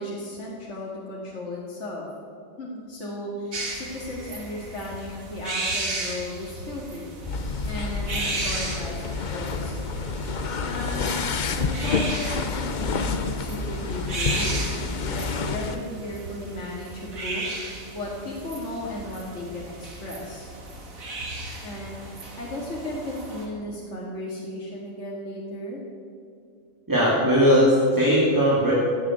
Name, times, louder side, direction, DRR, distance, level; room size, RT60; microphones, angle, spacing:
voice 1, 0.0-2.1 2.6-7.1 7.7-9.9 10.6-11.3 11.6-14.8 15.0-17.4 17.9-20.5 21.6-25.8, left 1 dB, 60° left, -4 dB, 2.5 m, -35 dB
sound 1, 3.5-23.5, right 2 dB, 85° right, 2.6 m, -35 dB
sound 2, 7.2-15.8, left 4 dB, 45° left, 0.7 m, -28 dB
voice 2, 26.9-28.7, equal, 15° right, -6 dB, 2.7 m, -19 dB
15.5 x 8.3 x 8.7 m, 2.3 s
omnidirectional pair, 1.4 m